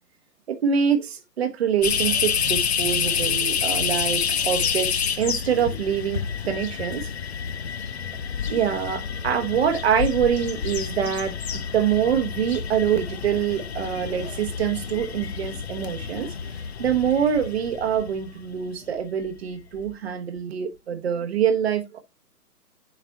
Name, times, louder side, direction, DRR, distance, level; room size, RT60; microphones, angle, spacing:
voice 1, 0.5-7.0 8.5-11.3 11.7-16.3 16.8-22.0, right 8 dB, 40° right, 1.2 m, -25 dB
sound 1, 1.8-18.7 19.2-19.3 19.8-19.9, left 7 dB, 45° left, 0.5 m, -28 dB
7.5 x 4.1 x 4.0 m
figure-of-eight pair, 140°, 49 cm